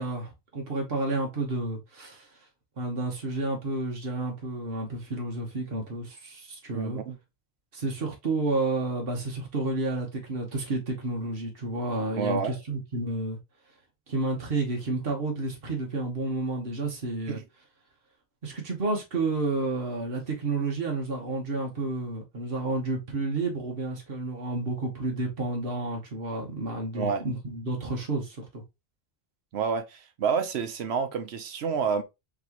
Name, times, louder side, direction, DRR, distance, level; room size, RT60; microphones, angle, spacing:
voice 1, 0.0-2.3 2.8-7.0 7.7-13.4 14.1-17.4 18.4-28.6, right 2 dB, 65° right, 1.4 m, -30 dB
voice 2, 6.7-7.2 12.2-12.6 17.3-17.4 26.9-27.2 29.5-32.0, right 6 dB, 85° right, 1.0 m, -29 dB
4.5 x 3.0 x 2.9 m
omnidirectional pair, 1.1 m